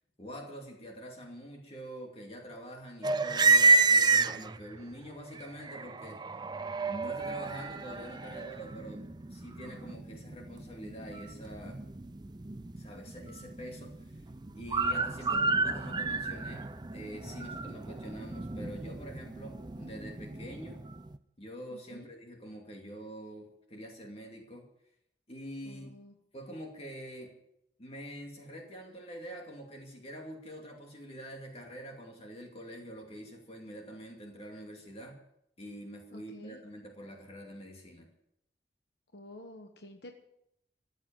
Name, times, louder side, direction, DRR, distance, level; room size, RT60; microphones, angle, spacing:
voice 1, 0.2-6.2 6.9-9.0 9.3-11.8 12.8-14.2 14.6-20.8 21.4-24.7 25.3-25.9 26.3-27.3 27.8-35.2 35.6-38.1, equal, 35° left, 1 dB, 2.4 m, -45 dB
sound 1, 3.0-4.8 5.3-21.2, right 3 dB, 25° right, 0.6 m, -30 dB
voice 2, 15.3-15.6 21.7-22.1 25.6-26.1 36.1-36.6 39.1-40.1, left 1 dB, 65° left, 5 dB, 1.3 m, -49 dB
14.5 x 8.0 x 9.1 m, 0.78 s
head